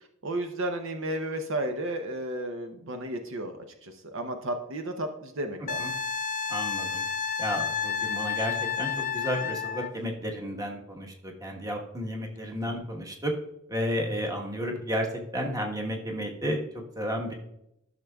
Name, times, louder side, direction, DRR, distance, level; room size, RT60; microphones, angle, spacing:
voice 1, 0.2-5.9 12.5-12.8, right 1 dB, 60° right, 6 dB, 0.7 m, -33 dB
Wind instrument woodwind instrument, 5.7-9.9 12.6-12.7, left 6 dB, 35° left, 0.4 m, -30 dB
voice 2, 6.5-7.0 7.4-13.3 13.7-15.1 15.3-17.3, equal, 15° right, 1 dB, 1.3 m, -32 dB
13.5 x 6.5 x 2.3 m, 0.80 s
head